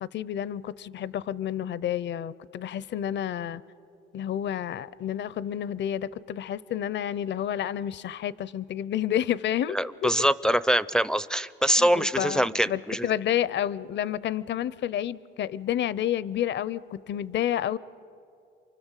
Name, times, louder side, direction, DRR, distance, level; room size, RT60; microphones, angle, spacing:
voice 1, 0.0-3.6 4.1-10.1 11.8-17.8, left 10 dB, 65° left, 18 dB, 0.7 m, -30 dB
voice 2, 9.7-13.1, equal, 5° left, 14 dB, 0.5 m, -24 dB
29.0 x 24.0 x 7.4 m, 2.5 s
cardioid pair, 90°, 20 cm